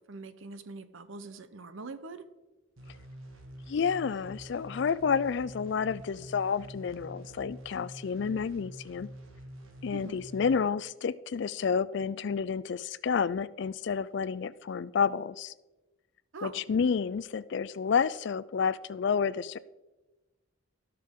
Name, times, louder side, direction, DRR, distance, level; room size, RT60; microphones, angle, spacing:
voice 1, 0.0-2.3 9.9-10.2 16.3-16.6, right 3 dB, 70° right, 11 dB, 0.7 m, -43 dB
sound 1, 2.8-10.5, right 1 dB, 90° right, 1.7 m, -47 dB
voice 2, 3.7-9.1 9.8-15.5 16.4-19.6, left 6 dB, 55° left, 17 dB, 0.3 m, -30 dB
17.0 x 5.9 x 3.7 m, 1.1 s
head